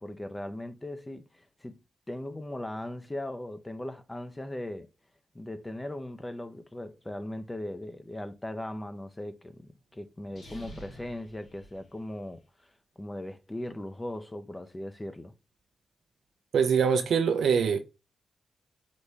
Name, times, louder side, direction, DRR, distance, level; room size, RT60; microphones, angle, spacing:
voice 1, 0.0-1.8 2.1-4.9 5.3-9.6 9.9-12.4 13.0-15.3, left 1 dB, 20° left, 0.6 m, -38 dB
sound 1, 10.3-12.4, right 1 dB, 80° left, 2.6 m, -49 dB
voice 2, 16.5-17.8, right 6 dB, 75° right, 0.6 m, -23 dB
4.1 x 3.4 x 3.4 m
cardioid pair, 60°, 0 cm